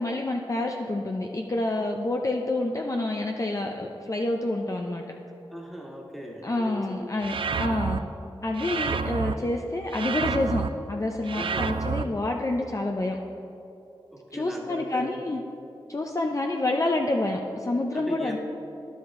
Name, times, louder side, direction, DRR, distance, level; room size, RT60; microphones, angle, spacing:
voice 1, 0.0-5.0 6.4-8.0 8.4-13.2 14.3-15.4 15.9-18.4, left 2 dB, 35° left, 2 dB, 0.6 m, -28 dB
voice 2, 5.5-7.2 11.3-11.8 14.1-15.2 17.9-18.4, equal, ahead, -1 dB, 1.6 m, -38 dB
sound 1, 7.2-8.0 8.6-9.3 9.9-10.7 11.3-12.0, right 5 dB, 60° right, 0.4 m, -29 dB
10.5 x 7.2 x 3.7 m, 2.9 s
cardioid pair, 40°, 10 cm